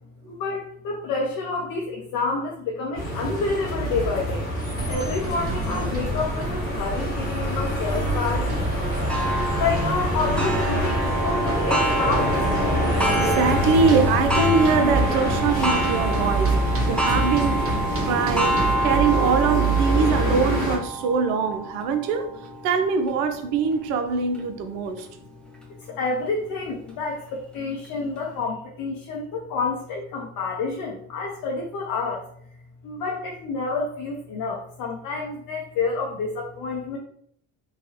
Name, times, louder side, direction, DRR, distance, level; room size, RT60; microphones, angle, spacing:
voice 1, 0.3-4.4 4.9-8.5 9.6-12.3 25.9-32.3 32.8-37.0, left 4 dB, 55° left, 0 dB, 0.7 m, -28 dB
sound 1, 2.9-20.8, equal, 90° left, 1.2 m, -25 dB
sound 2, 4.8-18.8, right 2 dB, 35° right, 0.9 m, -33 dB
Clock, 9.1-24.4 25.0-25.1 25.6-25.7 26.7-26.8, right 1 dB, ahead, 0.9 m, -28 dB
voice 2, 13.2-16.6 16.9-17.7 18.1-22.3 22.6-25.1, right 5 dB, 70° right, 7 dB, 0.6 m, -23 dB
2.9 x 2.2 x 2.8 m, 0.64 s
hypercardioid pair, 60°, 41 cm